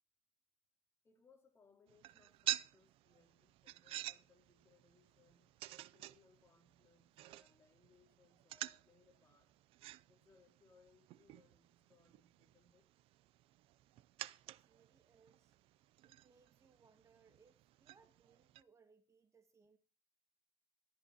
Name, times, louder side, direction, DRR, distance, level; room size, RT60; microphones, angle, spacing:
voice 1, 1.0-5.5 5.9-9.6 10.1-12.9, left 4 dB, 25° left, 4.3 m, -70 dB
sound 1, 1.9-18.6, right 15 dB, 80° right, 0.6 m, -49 dB
voice 2, 14.5-15.5 16.0-19.8, right 5 dB, 30° right, 2.0 m, -70 dB
14.5 x 13.5 x 4.2 m
cardioid pair, 120°, 9 cm